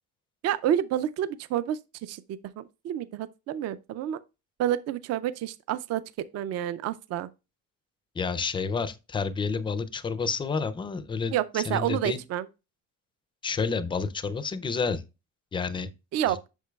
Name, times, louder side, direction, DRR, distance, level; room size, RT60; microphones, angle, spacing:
voice 1, 0.4-2.2 2.6-4.2 4.6-6.0 6.3-7.3 11.3-12.5 16.1-16.5, right 11 dB, 50° right, 0.4 m, -29 dB
voice 2, 8.1-12.2 13.4-15.0 15.5-15.9, left 5 dB, 15° left, 0.4 m, -29 dB
8.1 x 6.5 x 2.3 m
cardioid pair, 180°, 33 cm